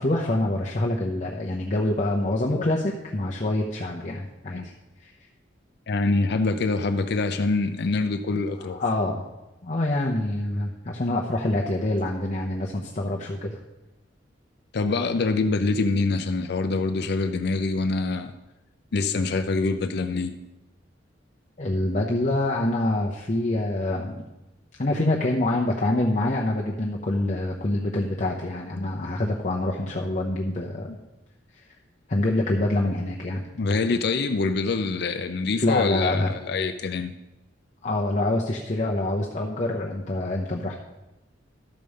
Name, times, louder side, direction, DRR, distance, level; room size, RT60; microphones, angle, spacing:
voice 1, 0.0-4.6 5.0-5.1 8.7-9.2 9.6-13.6 21.6-24.1 24.8-30.9 31.5-31.6 32.1-33.4 35.6-36.3 37.8-40.8, left 1 dB, 40° left, -1 dB, 0.9 m, -26 dB
voice 2, 5.9-8.8 14.7-18.3 18.9-20.4 28.7-28.9 33.6-37.1, left 3 dB, 60° left, 8 dB, 0.5 m, -25 dB
12.5 x 5.3 x 6.5 m, 1.0 s
head